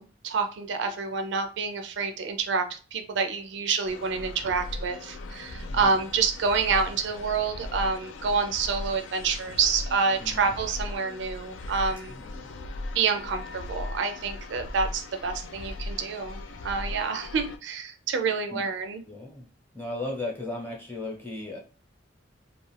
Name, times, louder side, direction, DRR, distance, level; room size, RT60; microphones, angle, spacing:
voice 1, 0.0-12.1 12.9-19.0, right 5 dB, 65° right, 6 dB, 0.4 m, -28 dB
sound 1, 3.8-17.6, left 2 dB, 75° left, 0.4 m, -38 dB
voice 2, 5.5-5.9 10.2-10.5 12.1-12.5 18.5-18.7 19.0-19.5 19.7-21.6, left 2 dB, 10° left, -1 dB, 0.9 m, -36 dB
2.4 x 2.3 x 3.2 m, 0.37 s
head